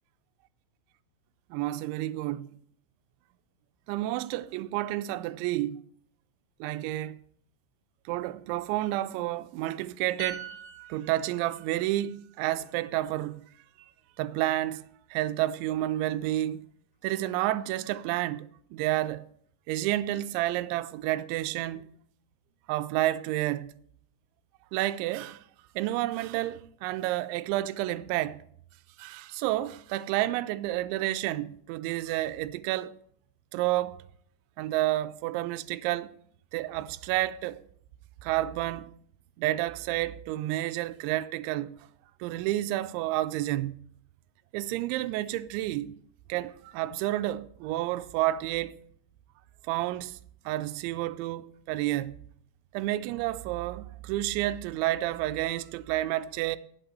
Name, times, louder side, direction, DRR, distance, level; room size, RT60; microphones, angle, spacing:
voice 1, 1.5-2.5 3.9-5.8 6.6-7.2 8.1-10.5 10.9-13.4 14.2-14.8 15.1-16.6 17.0-19.3 19.7-21.9 22.7-23.7 24.7-25.4 25.8-28.4 29.0-32.9 33.5-34.0 34.6-36.1 36.5-37.6 38.2-38.9 39.4-41.7 42.2-43.7 44.5-45.9 46.3-48.8 49.7-50.2 50.5-52.2 52.7-56.6, right 15 dB, 85° right, 2.8 m, -30 dB
sound 1, 10.2-13.8 14.1-14.4, right 6 dB, 60° left, 5.9 m, -46 dB
8.9 x 7.9 x 7.8 m
omnidirectional pair, 5.4 m